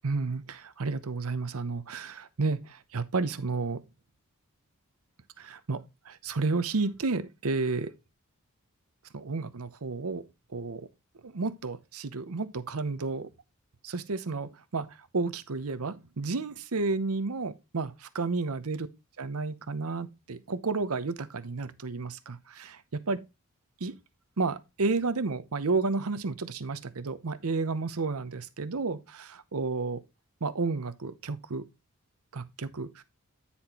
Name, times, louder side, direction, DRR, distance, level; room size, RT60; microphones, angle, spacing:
voice 1, 0.0-3.8 5.4-5.8 6.2-7.9 9.1-10.2 10.5-10.8 11.2-13.3 13.8-14.9 15.1-18.9 19.2-23.2 23.8-23.9 24.4-30.0 30.4-31.6 32.3-32.9, right 3 dB, 75° right, 0.8 m, -31 dB
9.8 x 4.3 x 4.2 m
head